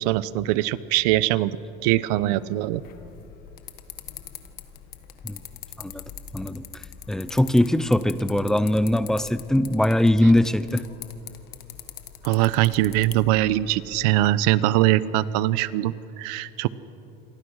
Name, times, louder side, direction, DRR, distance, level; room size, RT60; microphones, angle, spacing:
voice 1, 0.0-1.6 1.8-2.8 12.2-16.7, right 15 dB, 90° right, 17 dB, 0.8 m, -22 dB
sound 1, 2.7-14.3, left 10 dB, 50° left, 1.6 m, -43 dB
voice 2, 6.3-10.9, left 1 dB, 5° left, 14 dB, 0.4 m, -21 dB
28.0 x 23.5 x 6.4 m, 2.9 s
cardioid pair, 175°, 19 cm